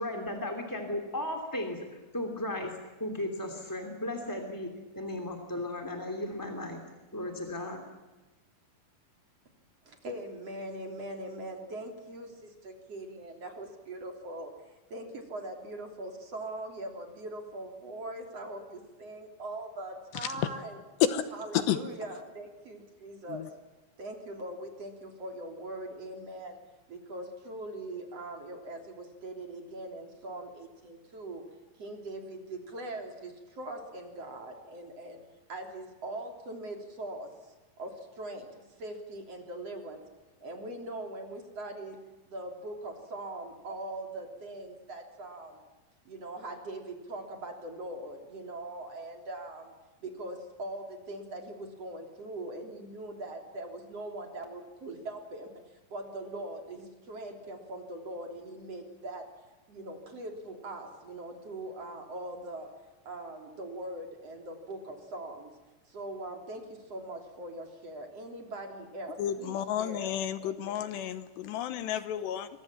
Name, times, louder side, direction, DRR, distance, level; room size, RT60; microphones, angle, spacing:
voice 1, 0.0-1.8 2.1-2.7 3.0-6.8 7.1-7.8, left 1 dB, 5° left, 3 dB, 1.5 m, -35 dB
voice 2, 9.8-14.5 14.9-20.8 21.3-23.5 24.0-26.6 26.9-31.4 31.8-35.2 35.5-37.3 37.8-40.0 40.4-42.0 42.3-45.6 46.1-49.7 50.0-55.5 55.9-59.3 59.7-62.7 63.1-65.5 65.9-70.8, right 1 dB, 35° right, 3 dB, 3.8 m, -41 dB
voice 3, 20.1-20.5 21.0-21.8 23.3-23.5 69.2-72.5, left 11 dB, 75° left, 11 dB, 3.1 m, -31 dB
26.5 x 23.0 x 7.4 m, 1.2 s
omnidirectional pair, 5.3 m